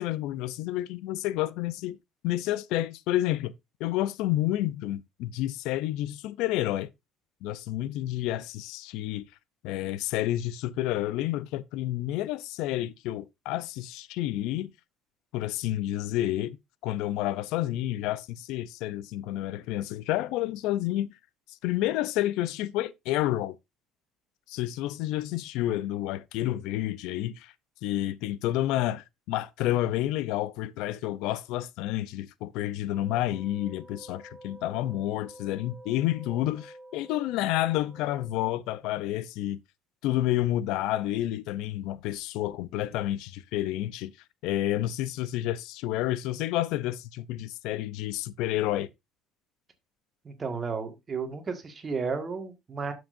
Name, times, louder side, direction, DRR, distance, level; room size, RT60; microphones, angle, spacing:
voice 1, 0.0-2.0 2.2-3.5 3.8-6.9 7.4-9.2 9.6-14.7 15.3-16.6 16.8-21.1 21.6-23.6 24.5-27.5 27.8-39.6 40.0-44.1 44.4-48.9, left 14 dB, 80° left, 0.5 m, -30 dB
sound 1, 32.9-38.5, right 1 dB, 10° left, 3.6 m, -49 dB
voice 2, 50.2-52.9, right 5 dB, 25° right, 1.7 m, -33 dB
11.5 x 6.3 x 2.6 m
cardioid pair, 130°, 0 cm